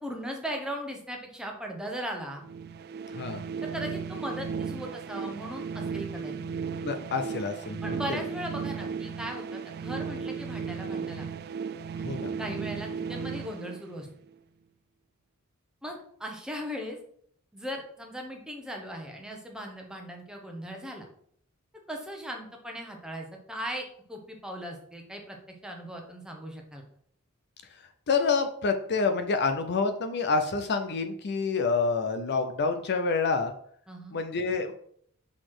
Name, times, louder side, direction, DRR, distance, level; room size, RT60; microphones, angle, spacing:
voice 1, 0.0-2.4 3.6-6.3 7.8-11.3 12.4-14.1 15.8-17.0 17.5-21.1 21.9-25.4 25.6-26.8 33.9-34.2, equal, 5° right, 1 dB, 1.1 m, -38 dB
sound 1, 2.4-14.3, right 6 dB, 45° right, 0.3 m, -35 dB
voice 2, 6.8-8.2 12.0-12.3 28.1-33.5 34.1-34.7, left 4 dB, 50° left, 7 dB, 0.6 m, -27 dB
6.0 x 4.0 x 4.9 m, 0.63 s
head